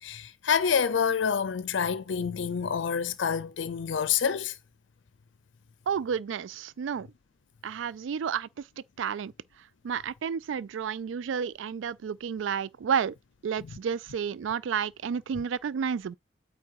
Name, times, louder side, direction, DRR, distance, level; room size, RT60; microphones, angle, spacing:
voice 1, 0.0-4.6, left 7 dB, 80° left, 0.5 m, -27 dB
voice 2, 5.9-7.1 7.6-8.7 9.0-9.3 9.8-13.1 13.4-16.2, right 7 dB, 90° right, 0.4 m, -31 dB
8.5 x 3.4 x 4.7 m
head